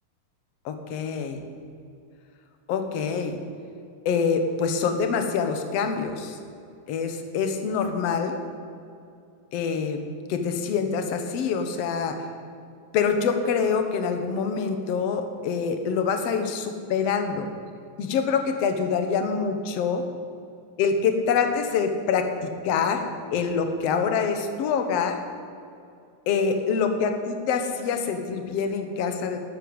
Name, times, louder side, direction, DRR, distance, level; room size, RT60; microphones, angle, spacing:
voice 1, 0.7-1.4 2.7-3.4 4.1-6.4 6.9-8.4 9.5-10.0 10.3-12.3 12.9-17.5 18.0-20.0 20.8-23.0 23.3-25.2 26.3-29.4, left 6 dB, 60° left, 6 dB, 1.9 m, -25 dB
12.5 x 10.5 x 8.0 m, 2.5 s
omnidirectional pair, 3.8 m